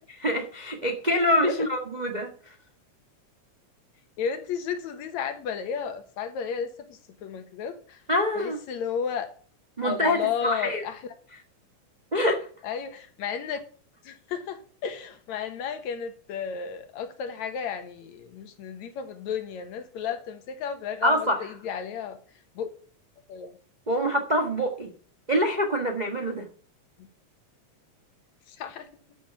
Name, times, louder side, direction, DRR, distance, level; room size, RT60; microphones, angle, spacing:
voice 1, 0.2-2.3 8.1-8.6 9.8-10.8 12.1-12.5 21.0-21.3 23.9-24.9 25.3-26.5, equal, 75° right, 0.4 m, -25 dB
voice 2, 4.2-8.0 8.4-9.3 9.8-11.0 12.6-13.6 14.0-22.2 22.6-22.7 23.3-23.6 28.5-28.9, left 7 dB, 70° left, 2.5 m, -33 dB
12.0 x 6.3 x 5.8 m
omnidirectional pair, 3.5 m